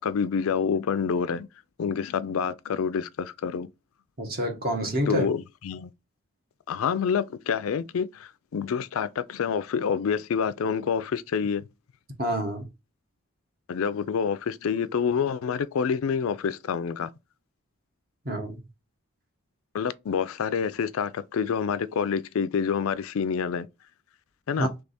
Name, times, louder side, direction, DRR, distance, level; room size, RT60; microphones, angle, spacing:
voice 1, 0.0-1.5 1.8-3.7 5.1-5.9 6.7-11.6 13.7-17.1 19.7-23.7 24.5-24.7, left 6 dB, 75° left, 0.4 m, -27 dB
voice 2, 4.2-5.3 12.2-12.7 18.2-18.6 24.6-24.7, right 1 dB, 45° right, 1.1 m, -27 dB
3.4 x 3.2 x 4.0 m
head